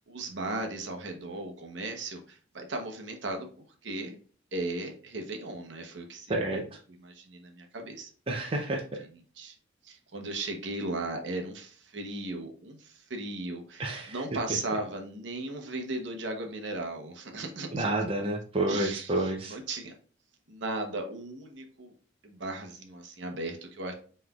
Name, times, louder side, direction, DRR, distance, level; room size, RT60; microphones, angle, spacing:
voice 1, 0.1-3.5 3.8-4.2 4.5-6.6 7.0-8.1 9.4-9.6 9.8-17.9 18.7-19.9 20.5-21.9 22.2-23.9, right 2 dB, 70° right, 4 dB, 0.8 m, -36 dB
voice 2, 6.3-6.6 8.3-9.0 13.8-14.2 17.7-19.6, right 1 dB, 30° right, 1 dB, 0.5 m, -29 dB
5.7 x 3.2 x 2.3 m, 0.42 s
head